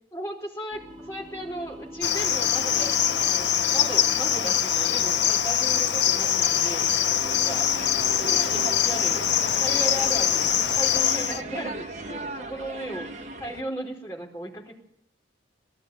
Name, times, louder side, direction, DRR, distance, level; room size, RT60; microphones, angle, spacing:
voice 1, 0.1-2.9 3.2-6.9 7.4-7.7 8.0-13.1 13.4-14.7, right 1 dB, 15° left, -1 dB, 4.3 m, -36 dB
sound 1, 0.7-12.7, right 3 dB, 20° right, 1.6 m, -43 dB
Cricket, 2.0-11.4, left 9 dB, 65° left, 0.8 m, -23 dB
sound 2, 7.8-13.6, right 2 dB, 35° right, 1.5 m, -38 dB
18.5 x 15.5 x 9.5 m, 0.71 s
head